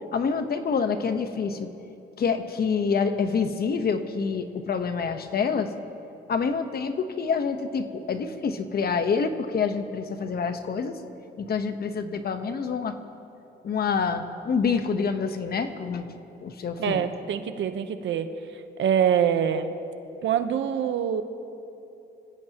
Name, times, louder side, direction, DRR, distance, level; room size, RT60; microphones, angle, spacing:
voice 1, 0.1-1.7 2.2-5.7 6.3-11.0 11.4-12.9 13.6-16.1 16.4-17.1, left 5 dB, 50° left, 8 dB, 1.2 m, -27 dB
voice 2, 16.8-19.7 20.2-21.2, right 8 dB, 70° right, 9 dB, 1.1 m, -25 dB
25.5 x 16.5 x 3.0 m, 2.9 s
cardioid pair, 90°, 20 cm